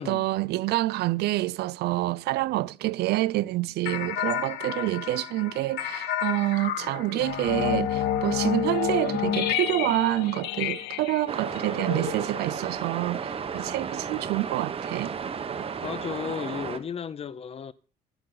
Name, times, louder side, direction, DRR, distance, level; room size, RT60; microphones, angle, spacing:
voice 1, 0.0-15.1, right 17 dB, 75° right, 0.5 m, -27 dB
sound 1, 3.9-12.8, left 10 dB, 85° left, 1.2 m, -30 dB
sound 2, 11.3-16.8, right 6 dB, 35° right, 1.0 m, -33 dB
voice 2, 15.8-17.7, left 7 dB, 35° left, 0.7 m, -34 dB
17.5 x 5.8 x 3.9 m
cardioid pair, 110°, 17 cm